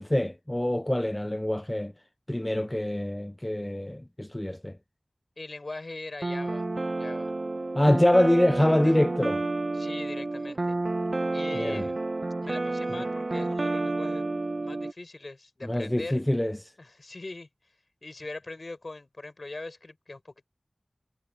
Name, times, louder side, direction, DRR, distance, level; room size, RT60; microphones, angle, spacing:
voice 1, 0.0-1.9 2.3-4.8 7.7-9.4 11.5-11.8 12.9-13.0 15.6-16.6, left 1 dB, 20° left, 0.4 m, -25 dB
voice 2, 5.4-7.4 8.6-9.0 9.7-10.8 11.3-12.0 12.4-16.2 16.8-17.5 18.0-20.5, left 2 dB, 60° left, 7.1 m, -41 dB
sound 1, 6.2-14.9, right 2 dB, 60° right, 0.8 m, -30 dB
wide cardioid pair, 65°, 0 cm